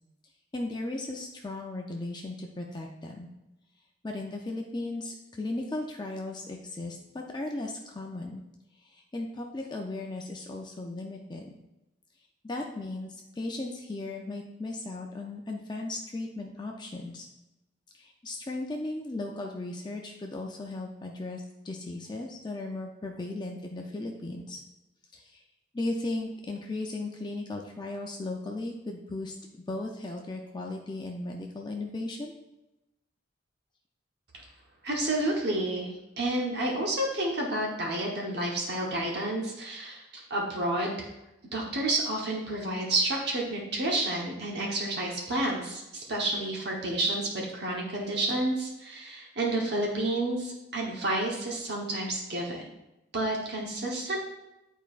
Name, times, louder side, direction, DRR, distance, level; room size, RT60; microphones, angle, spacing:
voice 1, 0.5-3.3 4.0-8.4 8.8-11.5 12.4-17.3 17.9-24.6 25.1-25.4 25.7-29.3 29.7-32.3, left 2 dB, 25° left, 1 dB, 0.5 m, -36 dB
voice 2, 34.8-35.9 36.2-41.0 41.5-52.7 53.1-54.2, right 1 dB, 60° right, -2 dB, 1.1 m, -30 dB
8.9 x 4.6 x 2.5 m, 0.95 s
head